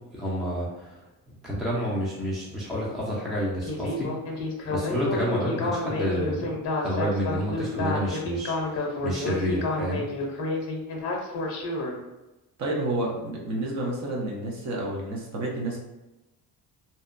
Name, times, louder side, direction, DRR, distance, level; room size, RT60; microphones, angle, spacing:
voice 1, 0.0-4.1 4.7-6.5 6.8-10.1, equal, ahead, -6 dB, 0.4 m, -29 dB
Speech synthesizer, 3.6-11.9, left 2 dB, 45° left, 0.6 m, -30 dB
voice 2, 12.6-15.8, right 1 dB, 45° right, -2 dB, 0.6 m, -30 dB
2.7 x 2.1 x 2.5 m, 1.0 s
cardioid pair, 160°, 38 cm